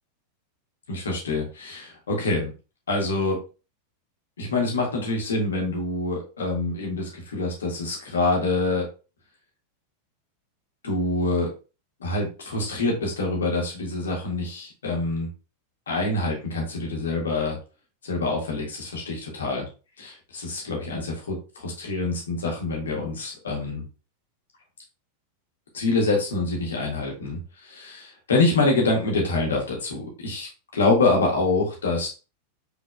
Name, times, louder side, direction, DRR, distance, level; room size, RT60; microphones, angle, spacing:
voice 1, 0.9-2.5 2.9-3.4 4.4-8.8 10.8-11.5 12.0-15.3 15.9-17.6 18.0-19.7 20.0-21.4 21.6-23.8 25.7-32.1, left 2 dB, 65° left, 0 dB, 1.7 m, -26 dB
5.2 x 4.1 x 2.2 m, 0.33 s
figure-of-eight pair, 90°, 0 cm